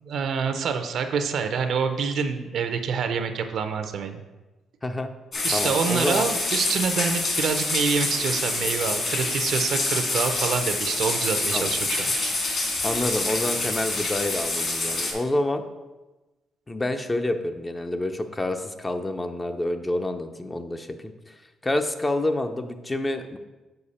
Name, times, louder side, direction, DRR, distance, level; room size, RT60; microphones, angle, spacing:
voice 1, 0.0-4.2 5.4-12.1, right 6 dB, 70° right, 8 dB, 0.6 m, -26 dB
sound 1, 5.3-15.1, left 2 dB, 45° left, 1.8 m, -26 dB
voice 2, 5.5-6.3 11.5-11.8 12.8-15.6 16.7-21.1 21.6-23.4, left 1 dB, 20° left, 7 dB, 0.5 m, -28 dB
6.7 x 4.7 x 4.2 m, 1.1 s
cardioid pair, 90°, 0 cm